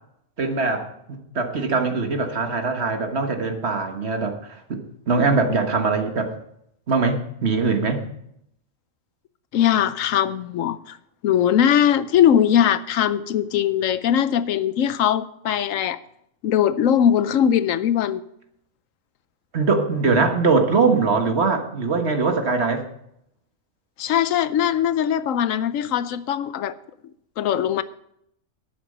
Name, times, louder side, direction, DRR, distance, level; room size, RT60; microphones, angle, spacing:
voice 1, 0.4-6.3 6.9-8.0 19.5-22.8, right 4 dB, 55° right, 5 dB, 1.7 m, -22 dB
voice 2, 9.5-11.0 11.2-16.0 16.4-18.2 24.0-26.7 27.4-27.8, left 9 dB, 80° left, 15 dB, 1.0 m, -20 dB
11.5 x 9.6 x 5.4 m, 0.74 s
omnidirectional pair, 1.4 m